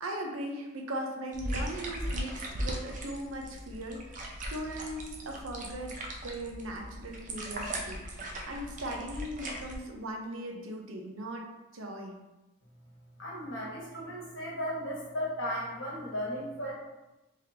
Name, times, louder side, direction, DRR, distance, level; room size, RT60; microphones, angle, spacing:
voice 1, 0.0-11.5 11.7-12.2, right 1 dB, 85° right, 2 dB, 0.7 m, -39 dB
sound 1, 1.3-9.8, right 1 dB, 40° right, 0.5 m, -38 dB
voice 2, 13.2-16.7, equal, 65° left, -5 dB, 1.4 m, -35 dB
3.6 x 3.3 x 2.8 m, 1.0 s
head